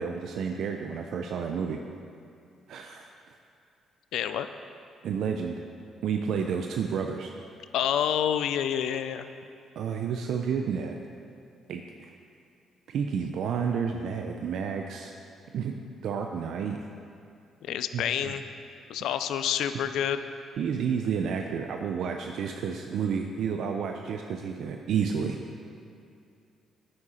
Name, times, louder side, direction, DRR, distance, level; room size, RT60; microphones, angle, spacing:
voice 1, 0.0-1.8 2.7-3.1 5.0-5.6 6.0-7.3 9.8-11.0 11.7-12.1 12.9-15.1 15.5-16.8 17.9-18.3 20.6-25.4, right 6 dB, 75° right, 3 dB, 0.5 m, -30 dB
voice 2, 4.1-4.5 7.7-9.2 17.6-18.4 18.9-20.3, left 9 dB, 80° left, 10 dB, 0.4 m, -28 dB
9.7 x 8.6 x 4.3 m, 2.4 s
cardioid pair, 90°, 0 cm